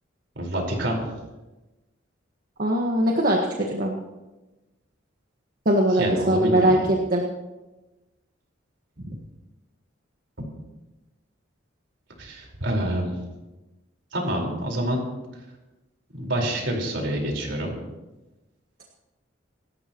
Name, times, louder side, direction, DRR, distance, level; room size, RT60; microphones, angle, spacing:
voice 1, 0.4-1.1 5.9-6.7 12.2-13.2 14.1-15.0 16.1-17.7, right 1 dB, 65° right, -1 dB, 4.7 m, -27 dB
voice 2, 2.6-3.9 5.6-7.2 9.0-9.1, right 1 dB, 45° right, -1 dB, 1.6 m, -21 dB
27.0 x 13.5 x 3.1 m, 1.1 s
head